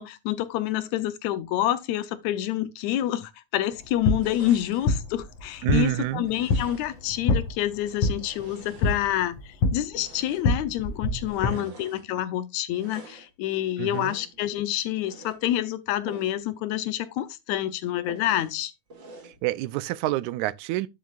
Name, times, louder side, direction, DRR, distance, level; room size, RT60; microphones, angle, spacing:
voice 1, 0.0-18.7, left 12 dB, 80° left, 2.0 m, -28 dB
sound 1, 3.7-11.5, left 3 dB, 60° left, 2.2 m, -28 dB
sound 2, 4.2-5.0 6.2-7.1 7.7-9.3 9.9-10.6 11.2-12.1 12.7-13.3 13.9-14.4 14.9-15.4 16.0-16.4 16.8-16.9 17.3-17.4 18.1-18.6 18.9-19.4, right 3 dB, 40° right, 2.4 m, -47 dB
voice 2, 5.6-6.3 11.4-11.7 13.8-14.2 19.2-20.9, right 16 dB, 85° right, 2.0 m, -28 dB
10.0 x 7.6 x 2.4 m
omnidirectional pair, 3.4 m